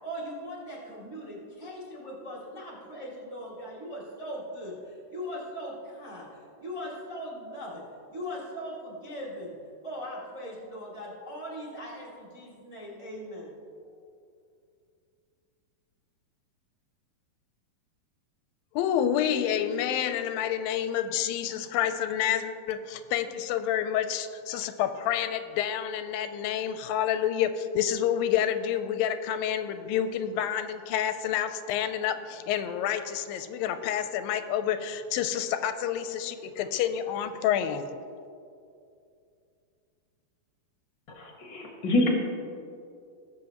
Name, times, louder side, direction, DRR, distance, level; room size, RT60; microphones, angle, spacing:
voice 1, 0.0-6.3 6.6-7.8 8.1-9.5 9.8-13.5, equal, 15° right, -5 dB, 1.4 m, -39 dB
voice 2, 18.7-37.9, left 9 dB, 90° left, 10 dB, 2.3 m, -28 dB
voice 3, 41.1-42.1, left 1 dB, 50° left, 0 dB, 1.4 m, -27 dB
18.0 x 7.7 x 3.0 m, 2.5 s
omnidirectional pair, 4.0 m